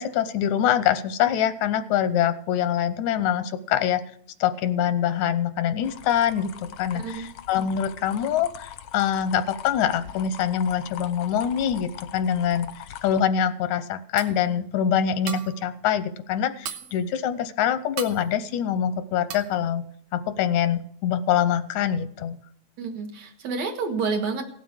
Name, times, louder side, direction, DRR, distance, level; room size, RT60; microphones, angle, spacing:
voice 1, 0.0-4.0 4.4-6.5 6.8-12.7 13.0-19.8 20.1-22.4, left 9 dB, 90° left, 12 dB, 2.2 m, -24 dB
sound 1, 5.8-13.2, left 10 dB, 75° left, 1.5 m, -42 dB
voice 2, 6.9-7.3 22.8-24.4, right 4 dB, 65° right, 4 dB, 2.7 m, -29 dB
sound 2, 13.9-14.0 14.2-14.6 15.0-15.7 16.0-16.1 16.4-17.0 17.5-17.6 18.0-18.3 18.7-18.9 19.3-19.6, right 8 dB, 85° right, 2.6 m, -37 dB
17.5 x 7.4 x 6.4 m, 0.65 s
omnidirectional pair, 3.4 m